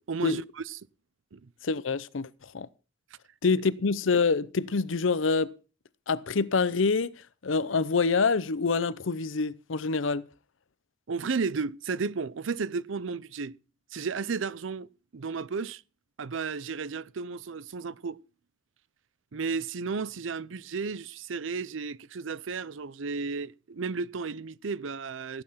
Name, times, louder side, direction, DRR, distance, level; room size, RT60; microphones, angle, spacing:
voice 1, 0.1-0.4 1.3-1.5 11.1-13.6 13.9-14.9 15.1-15.8 16.2-18.2 19.3-25.4, right 4 dB, 80° right, 0.6 m, -33 dB
voice 2, 1.6-2.7 3.4-5.5 6.1-10.3, left 4 dB, 90° left, 0.7 m, -26 dB
15.5 x 8.9 x 5.7 m
head